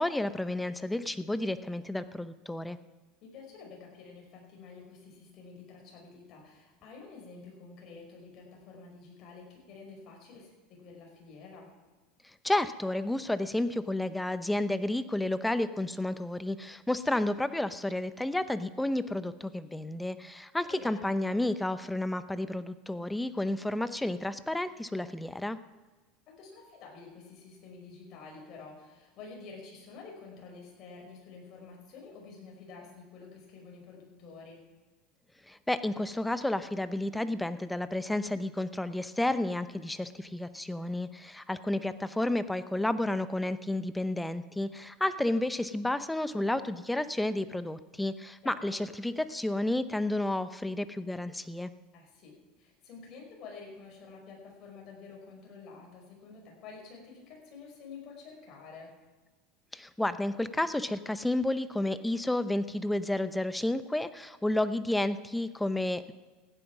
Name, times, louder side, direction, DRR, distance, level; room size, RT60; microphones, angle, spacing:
voice 1, 0.0-2.8 12.4-25.6 35.5-51.7 59.7-66.1, left 1 dB, 5° left, 13 dB, 0.7 m, -31 dB
voice 2, 3.2-11.7 20.7-21.1 26.3-34.6 48.4-48.8 51.9-59.0, left 4 dB, 45° left, 0 dB, 5.2 m, -49 dB
15.5 x 9.4 x 6.0 m, 1.3 s
supercardioid pair, 125°, 0 cm